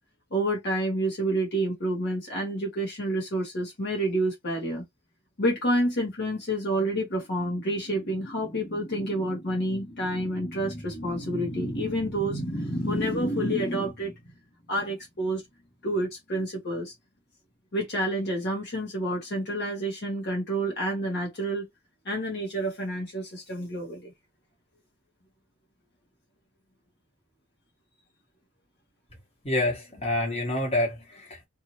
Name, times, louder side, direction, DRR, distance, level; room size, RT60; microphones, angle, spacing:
voice 1, 0.3-4.8 5.4-14.1 14.7-15.4 15.8-16.9 17.7-21.7 22.0-24.1, right 1 dB, 50° left, 1.2 m, -28 dB
voice 2, 29.4-31.5, left 1 dB, 30° left, 1.4 m, -27 dB
2.7 x 2.6 x 2.9 m
head